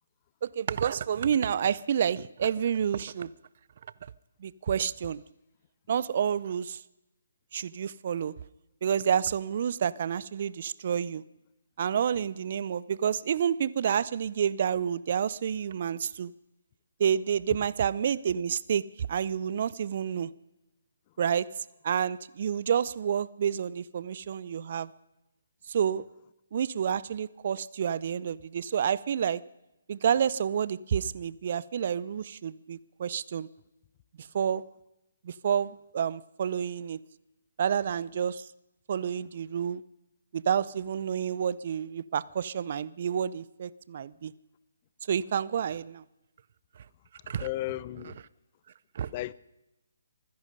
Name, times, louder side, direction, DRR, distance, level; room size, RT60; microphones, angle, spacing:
voice 1, 0.4-3.3 4.4-5.2 5.9-6.8 7.5-8.3 8.8-11.2 11.8-16.3 17.0-20.3 21.2-21.5 21.8-24.9 25.7-26.1 26.5-29.4 29.9-33.5 34.3-34.6 35.2-37.0 37.6-38.5 38.9-39.8 40.3-44.3 45.1-46.0 47.3-47.5 48.9-49.1, right 8 dB, 50° right, 0.6 m, -29 dB
voice 2, 47.2-48.2 49.1-49.3, left 16 dB, 30° left, 0.6 m, -35 dB
24.0 x 10.5 x 5.3 m
figure-of-eight pair, 145°, 0 cm